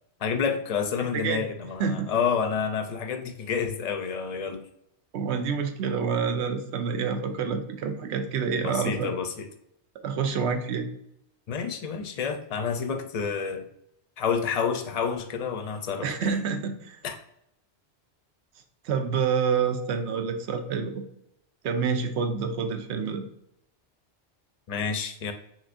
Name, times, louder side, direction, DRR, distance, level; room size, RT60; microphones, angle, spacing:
voice 1, 0.2-4.6 8.6-9.5 11.5-13.6 14.2-16.3 17.0-17.2 24.7-25.3, left 6 dB, 45° left, 7 dB, 0.5 m, -29 dB
voice 2, 5.1-9.1 10.0-10.9 16.0-17.0 18.8-21.0 21.6-23.2, right 6 dB, 80° right, 7 dB, 0.9 m, -27 dB
6.1 x 2.9 x 2.5 m, 0.76 s
omnidirectional pair, 1.1 m